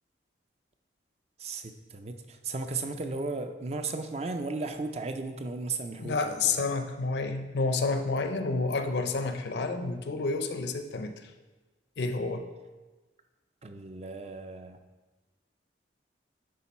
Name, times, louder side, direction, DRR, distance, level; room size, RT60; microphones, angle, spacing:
voice 1, 1.4-6.6 13.6-14.8, right 3 dB, 35° right, 7 dB, 0.4 m, -35 dB
voice 2, 6.0-11.1 12.0-12.5, left 3 dB, 70° left, 7 dB, 0.5 m, -29 dB
10.0 x 3.8 x 4.2 m, 1.2 s
head